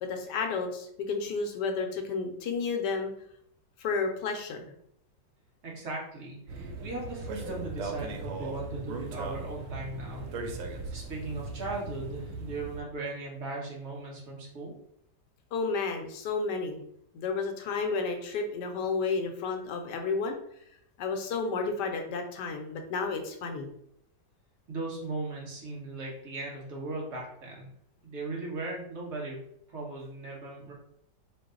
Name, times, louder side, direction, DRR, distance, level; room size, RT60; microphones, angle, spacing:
voice 1, 0.0-3.1 3.8-4.7 15.5-16.8 17.1-20.4 21.0-23.7, left 4 dB, 75° left, 4 dB, 1.2 m, -31 dB
voice 2, 5.6-10.3 10.6-14.7 24.7-27.7 28.0-29.4 29.7-30.7, right 2 dB, 45° right, -2 dB, 1.2 m, -38 dB
sound 1, 6.5-12.8, right 3 dB, 90° right, 0.7 m, -38 dB
4.5 x 2.0 x 3.7 m, 0.71 s
omnidirectional pair, 1.9 m